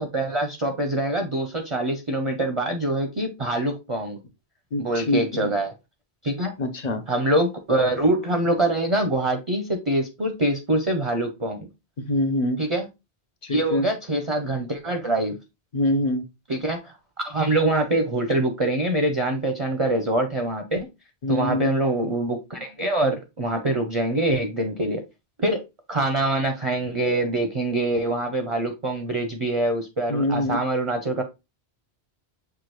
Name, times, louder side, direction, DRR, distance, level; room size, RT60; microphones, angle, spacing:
voice 1, 0.0-4.2 4.8-5.7 6.2-6.5 7.1-11.6 12.6-12.9 13.5-15.4 16.5-20.9 21.3-25.0 25.4-25.6 25.9-31.2, right 1 dB, 35° right, 4 dB, 0.6 m, -24 dB
voice 2, 4.7-5.5 6.6-7.0 12.0-12.6 13.4-13.9 15.7-16.2 21.2-21.7 30.1-30.6, left 1 dB, 45° left, 7 dB, 0.7 m, -24 dB
6.7 x 2.4 x 3.0 m, 0.24 s
omnidirectional pair, 1.1 m